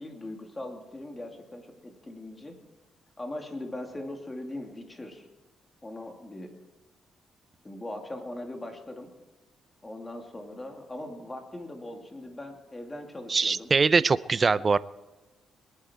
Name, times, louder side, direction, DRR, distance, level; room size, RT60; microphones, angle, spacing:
voice 1, 0.0-2.6 3.2-5.2 5.8-6.5 7.6-9.1 9.8-13.7, left 1 dB, 20° left, 3 dB, 2.7 m, -40 dB
voice 2, 13.3-14.8, right 4 dB, 35° right, 17 dB, 0.5 m, -22 dB
21.0 x 11.0 x 4.5 m, 1.1 s
cardioid pair, 95°, 0 cm